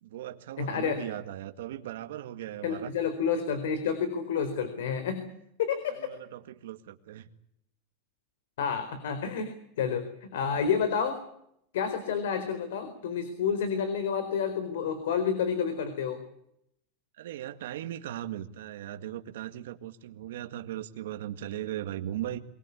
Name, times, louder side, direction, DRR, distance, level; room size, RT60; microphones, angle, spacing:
voice 1, 0.0-2.9 5.9-7.3 17.2-22.4, right 12 dB, 75° right, 7 dB, 1.8 m, -38 dB
voice 2, 0.6-1.1 2.6-5.2 5.6-6.1 8.6-11.2 11.7-16.2, left 6 dB, 75° left, 11 dB, 4.3 m, -30 dB
24.0 x 21.0 x 8.5 m, 0.76 s
supercardioid pair, 180°, 0 cm